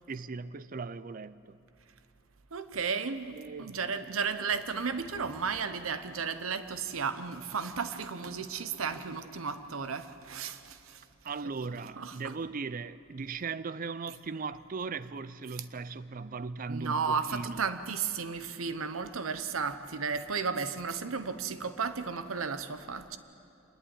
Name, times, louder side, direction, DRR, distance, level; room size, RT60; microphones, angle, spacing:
voice 1, 0.1-1.6 3.3-3.8 11.2-17.6, right 4 dB, 40° right, 0.5 m, -38 dB
voice 2, 2.5-11.0 12.0-12.3 16.7-23.2, right 5 dB, 85° right, 0.9 m, -34 dB
26.0 x 11.0 x 9.8 m
head